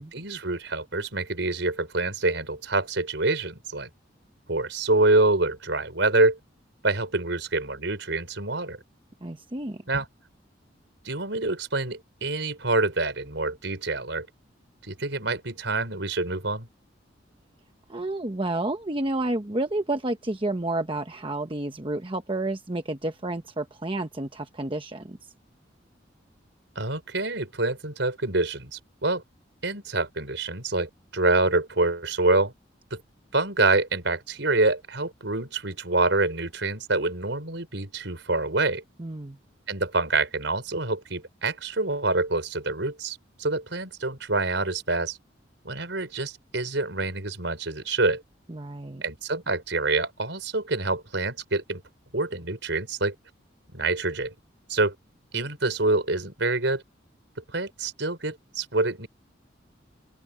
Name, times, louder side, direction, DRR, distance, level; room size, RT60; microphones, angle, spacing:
voice 1, 0.0-3.9 4.5-6.4 6.8-8.8 9.9-10.1 11.0-14.3 14.9-16.7 26.8-29.2 29.6-32.5 32.9-33.0 33.3-38.8 39.7-45.2 45.6-48.2 49.0-51.8 52.1-53.1 53.7-54.3 54.7-54.9 55.3-56.8 57.5-59.1, right 2 dB, 70° right, 5.5 m, -26 dB
voice 2, 9.2-9.8 17.9-25.2 39.0-39.4 48.5-49.0, right 2 dB, 30° right, 1.1 m, -30 dB
open air
head